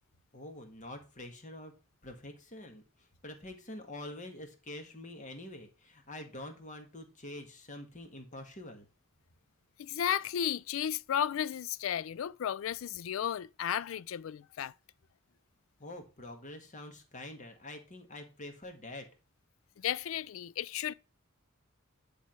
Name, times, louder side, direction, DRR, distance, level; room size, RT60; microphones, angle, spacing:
voice 1, 0.3-1.7 2.0-8.9 15.8-19.1, left 1 dB, 40° left, 1.6 m, -46 dB
voice 2, 9.8-14.7 19.8-20.9, left 9 dB, 75° left, 0.3 m, -34 dB
10.0 x 3.5 x 4.4 m
head